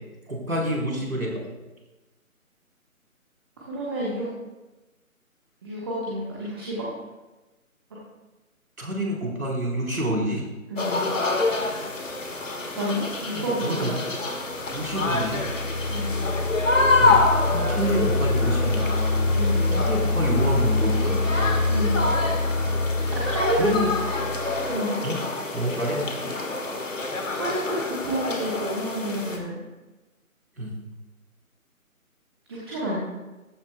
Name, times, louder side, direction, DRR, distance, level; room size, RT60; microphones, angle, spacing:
voice 1, 0.3-1.4 8.8-10.5 11.7-12.2 13.3-14.1 14.7-15.5 17.0-19.0 19.7-21.4 23.0-23.1 23.6-23.9 25.0-25.2 25.5-26.4 30.6-30.7, right 1 dB, 75° right, -2 dB, 3.9 m, -28 dB
voice 2, 3.6-4.3 5.6-6.8 10.7-11.0 12.7-13.9 15.9-16.2 19.3-19.7 21.7-22.0 23.1-23.6 24.7-25.0 27.4-29.6 32.5-33.0, right 1 dB, 15° right, -6 dB, 1.3 m, -30 dB
sound 1, 10.8-29.4, left 3 dB, 60° left, 1.7 m, -27 dB
sound 2, 14.5-24.8, left 2 dB, 80° left, 2.1 m, -25 dB
14.5 x 11.0 x 2.3 m, 1.1 s
figure-of-eight pair, 150°, 43 cm